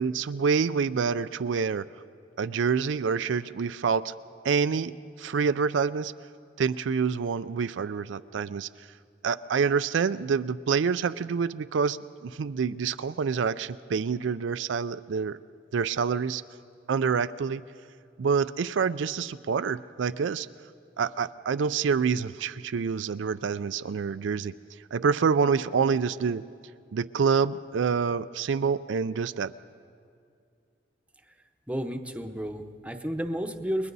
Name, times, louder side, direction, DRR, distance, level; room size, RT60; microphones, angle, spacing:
voice 1, 0.0-1.9 2.4-4.1 4.4-4.9 5.2-6.1 6.6-8.7 9.2-15.4 15.7-16.4 16.9-17.6 18.2-20.5 21.0-24.5 24.9-26.4 26.9-29.5, right 6 dB, 85° right, 13 dB, 0.4 m, -27 dB
voice 2, 31.7-33.9, equal, 5° right, 5 dB, 0.9 m, -32 dB
30.0 x 21.5 x 4.1 m, 2.3 s
head